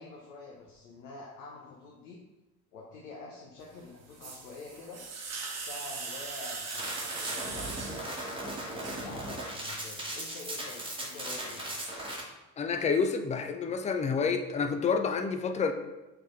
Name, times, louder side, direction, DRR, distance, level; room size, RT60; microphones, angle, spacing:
voice 1, 0.0-2.2 2.7-5.0 5.5-7.9 8.5-11.6, left 3 dB, 75° left, -3 dB, 0.9 m, -46 dB
sound 1, 3.7-9.1, right 4 dB, 35° right, 1.0 m, -40 dB
sound 2, 6.6-12.2, right 1 dB, 10° right, 1.2 m, -38 dB
voice 2, 12.6-15.7, left 5 dB, 15° left, 6 dB, 0.3 m, -28 dB
3.5 x 3.3 x 4.3 m, 1.1 s
hypercardioid pair, 60°, 46 cm